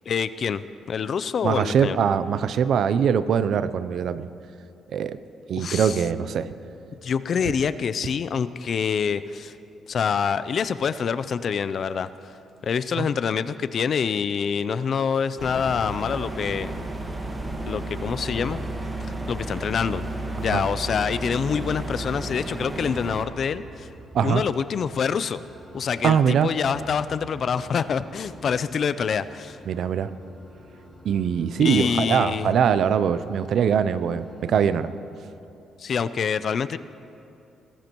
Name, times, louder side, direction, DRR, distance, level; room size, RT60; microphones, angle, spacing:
voice 1, 0.1-0.6 0.9-2.0 5.5-6.0 7.0-9.5 9.9-12.1 12.6-16.8 17.7-18.6 19.3-20.0 20.4-23.9 24.2-25.4 25.7-29.6 31.6-32.5 35.8-36.8, left 6 dB, 55° left, 14 dB, 0.4 m, -26 dB
voice 2, 1.4-4.3 4.9-5.2 5.5-6.5 13.0-13.1 20.4-20.6 24.1-24.4 26.0-26.5 29.7-30.1 31.0-34.9, right 7 dB, 65° right, 14 dB, 0.5 m, -22 dB
sound 1, 15.4-23.2, right 2 dB, 20° right, 1.6 m, -32 dB
sound 2, 22.5-34.9, equal, ahead, 3.3 m, -48 dB
21.5 x 15.5 x 3.0 m, 2.8 s
cardioid pair, 90°, 0 cm